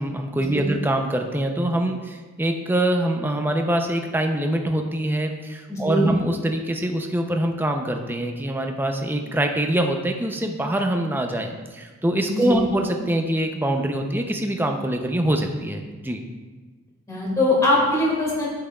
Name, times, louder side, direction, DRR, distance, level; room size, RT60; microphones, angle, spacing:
voice 1, 0.0-16.2, right 1 dB, 10° right, 4 dB, 0.5 m, -24 dB
voice 2, 5.7-6.1 12.3-12.7 17.1-18.5, left 1 dB, 15° left, -4 dB, 2.0 m, -22 dB
8.4 x 7.5 x 2.3 m, 1.3 s
head